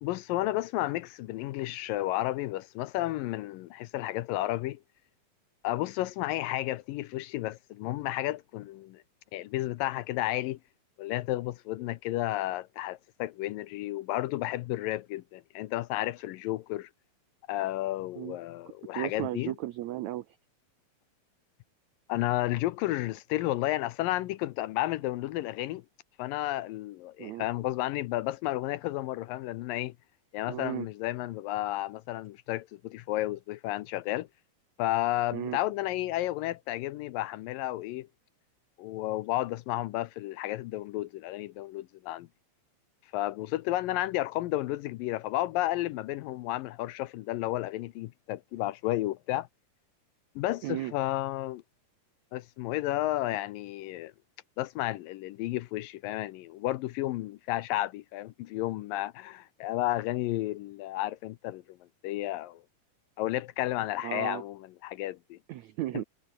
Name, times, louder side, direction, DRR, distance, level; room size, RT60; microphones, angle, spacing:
voice 1, 0.0-4.8 5.6-9.0 9.3-10.6 11.0-16.9 17.5-19.5 22.1-25.8 26.2-29.9 30.3-34.3 34.8-38.1 38.8-42.3 43.1-49.5 50.4-51.6 52.3-54.1 54.6-61.8 62.0-62.6 63.2-65.4, left 16 dB, 80° left, 2.3 m, -32 dB
voice 2, 18.9-20.4 27.2-27.5 30.5-30.9 35.3-35.6 50.6-50.9 64.0-64.4 65.5-66.0, right 14 dB, 90° right, 1.6 m, -35 dB
omnidirectional pair, 4.3 m